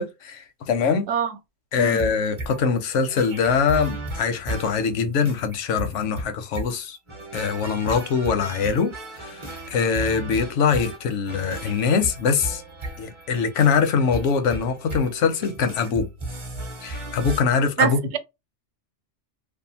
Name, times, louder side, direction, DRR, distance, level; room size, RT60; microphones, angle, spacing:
voice 1, 0.0-1.1 1.7-7.0 7.3-12.6 13.0-16.1 16.8-18.2, left 6 dB, 85° left, 1.0 m, -23 dB
sound 1, 1.7-17.4, right 2 dB, 30° right, 0.6 m, -35 dB
voice 2, 17.8-18.2, right 8 dB, 75° right, 0.9 m, -24 dB
2.6 x 2.2 x 2.7 m
omnidirectional pair, 1.2 m